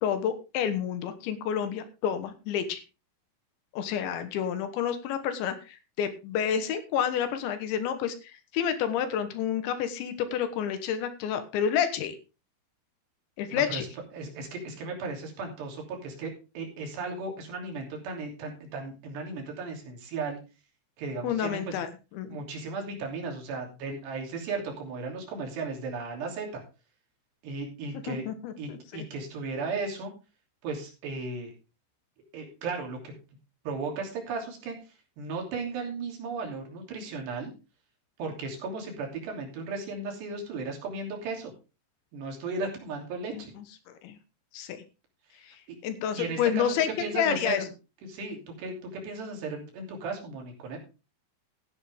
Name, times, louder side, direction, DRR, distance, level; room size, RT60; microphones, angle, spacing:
voice 1, 0.0-2.8 3.7-8.2 8.5-12.2 13.4-13.9 21.2-21.9 22.2-22.4 28.1-29.0 43.3-43.6 44.0-44.2 44.5-44.8 45.8-46.9 47.1-47.6, left 8 dB, 75° left, 10 dB, 3.5 m, -29 dB
voice 2, 13.5-13.9 14.1-20.4 21.0-21.8 22.3-26.6 27.4-28.2 28.6-30.1 30.6-31.5 32.3-33.1 33.6-34.8 35.2-37.5 38.2-41.5 42.1-43.5 46.1-47.7 48.0-50.8, right 3 dB, 65° right, 1 dB, 4.9 m, -35 dB
14.0 x 9.9 x 3.5 m, 0.31 s
omnidirectional pair, 5.4 m